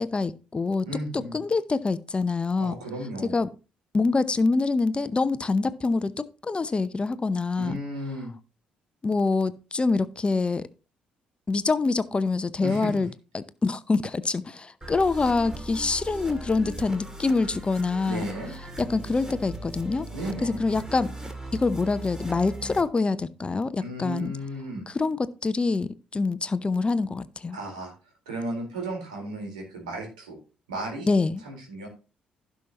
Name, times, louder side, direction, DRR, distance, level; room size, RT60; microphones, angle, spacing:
voice 1, 0.0-0.9 1.3-2.8 3.3-3.5 3.9-7.8 9.0-10.7 11.5-13.1 13.3-18.2 18.8-20.1 20.4-21.1 21.5-24.3 24.9-27.6 31.1-31.4, left 3 dB, 25° left, 0.7 m, -25 dB
voice 2, 0.8-1.4 2.6-3.4 7.6-8.3 12.6-13.0 18.0-18.5 20.1-20.6 23.8-24.8 27.5-27.9 28.3-30.4 30.7-31.1 31.4-31.9, right 1 dB, 75° right, 3.9 m, -34 dB
sound 1, 14.8-22.8, right 2 dB, 15° right, 2.3 m, -39 dB
16.0 x 5.8 x 2.9 m
figure-of-eight pair, 45°, 4 cm